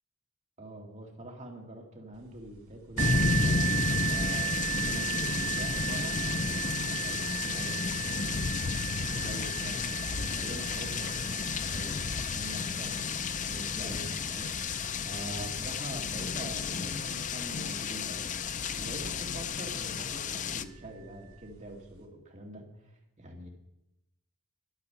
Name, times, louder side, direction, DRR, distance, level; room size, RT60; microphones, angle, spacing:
voice 1, 0.6-3.6 4.1-8.4 9.0-13.1 13.5-14.6 15.0-18.3 18.7-22.7 23.2-23.5, right 1 dB, 35° right, 1 dB, 2.2 m, -44 dB
sound 1, 3.0-20.6, left 5 dB, 35° left, 0.5 m, -32 dB
sound 2, 3.0-18.5 19.3-19.4 19.9-20.0, right 15 dB, 90° right, 3.4 m, -37 dB
11.0 x 10.5 x 5.7 m, 0.89 s
head